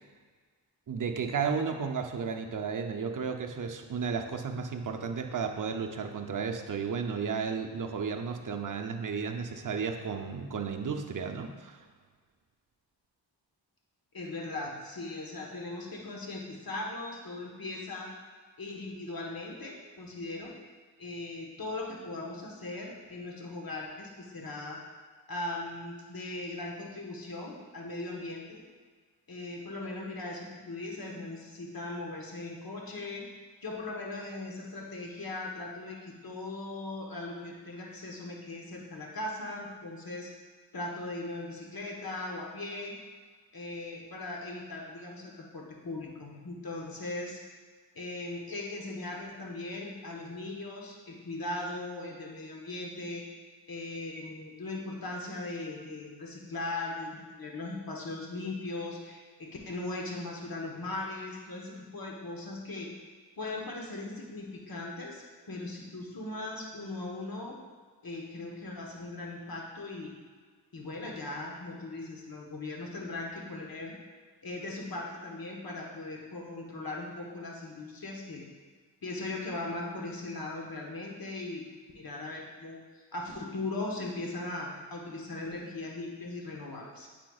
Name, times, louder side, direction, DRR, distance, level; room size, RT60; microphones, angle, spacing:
voice 1, 0.9-11.8, right 5 dB, 45° right, 4 dB, 0.6 m, -33 dB
voice 2, 14.1-18.1 18.6-20.5 21.0-24.8 25.3-28.6 29.3-33.3 33.6-40.3 40.7-43.0 43.5-47.4 47.9-53.2 53.7-63.0 63.4-67.6 68.0-70.1 70.7-73.9 74.4-78.4 79.0-81.6 81.9-82.8 83.1-87.1, left 2 dB, 55° left, -1 dB, 1.3 m, -39 dB
9.0 x 4.4 x 2.4 m, 1.6 s
cardioid pair, 50°, 44 cm